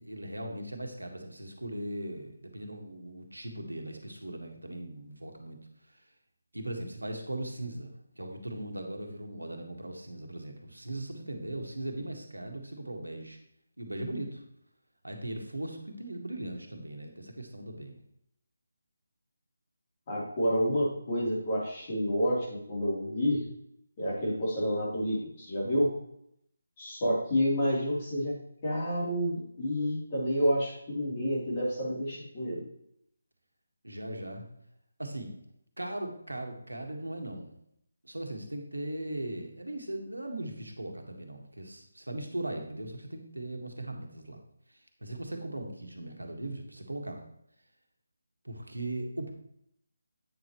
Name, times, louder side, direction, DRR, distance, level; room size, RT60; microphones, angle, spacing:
voice 1, 0.0-6.0 6.5-13.4 13.8-14.4 15.0-18.0 33.8-34.5 35.0-35.4 35.8-37.5 38.0-44.4 44.7-47.2 48.4-49.3, right 1 dB, 85° right, 3 dB, 1.5 m, -39 dB
voice 2, 20.1-23.4 24.0-25.9 26.8-28.3 28.6-32.6, equal, 30° left, -6 dB, 3.2 m, -29 dB
8.8 x 6.6 x 3.1 m, 0.74 s
figure-of-eight pair, 155°, 0 cm